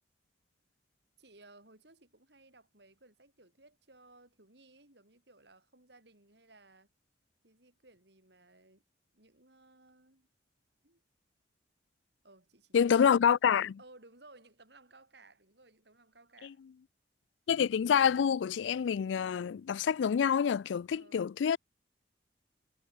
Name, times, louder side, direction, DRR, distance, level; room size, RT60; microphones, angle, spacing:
voice 1, 1.2-6.9 7.4-8.8 9.1-10.3 10.8-11.0 12.2-13.4 13.8-16.6 20.9-21.3, right 2 dB, 65° right, 5.6 m, -60 dB
voice 2, 12.7-13.8 17.5-21.6, left 7 dB, 80° left, 0.3 m, -27 dB
head